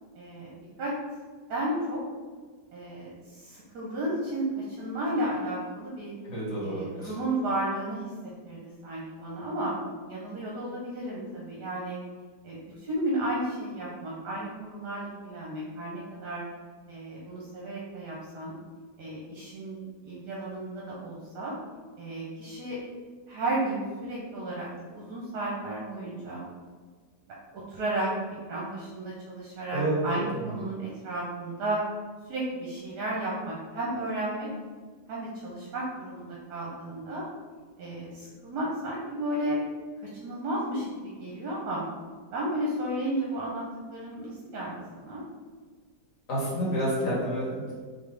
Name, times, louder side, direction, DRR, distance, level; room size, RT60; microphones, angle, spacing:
voice 1, 0.1-0.5 0.8-0.9 1.5-2.0 2.7-6.1 6.6-8.0 8.4-9.7 10.1-12.0 12.4-16.4 16.9-18.5 19.0-21.5 22.0-22.8 23.3-24.7 24.9-26.4 27.5-28.1 28.5-31.8 32.3-34.5 35.1-37.2 37.8-39.6 40.0-41.8 42.3-43.6 43.9-45.2, right 1 dB, 75° right, -5 dB, 1.4 m, -33 dB
voice 2, 6.2-7.1 29.7-30.5 46.3-47.7, right 1 dB, 50° left, -7 dB, 1.9 m, -29 dB
3.7 x 3.6 x 3.3 m, 1.5 s
omnidirectional pair, 1.8 m